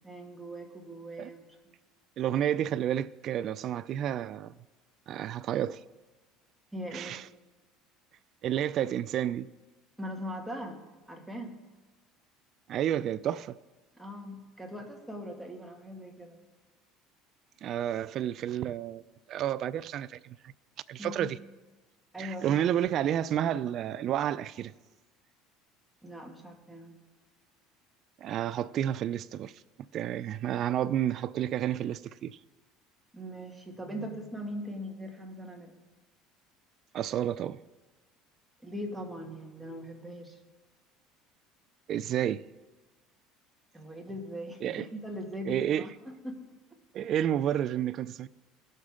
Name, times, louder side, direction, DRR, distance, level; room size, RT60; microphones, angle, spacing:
voice 1, 0.0-1.6 6.7-7.1 10.0-10.8 11.1-11.6 14.0-16.4 21.0-21.3 22.1-22.6 26.0-27.0 33.1-35.8 38.6-40.4 43.7-46.4, equal, 5° right, 2.0 m, -40 dB
voice 2, 2.2-4.5 5.1-5.8 6.9-7.3 8.4-9.5 12.7-13.6 17.6-19.0 19.3-20.2 20.9-21.4 22.2-24.7 28.2-29.5 29.8-32.4 36.9-37.6 41.9-42.4 44.6-44.9 45.5-45.9 46.9-48.3, right 10 dB, 55° right, 0.3 m, -30 dB
17.5 x 6.5 x 3.7 m
supercardioid pair, 95°, 0 cm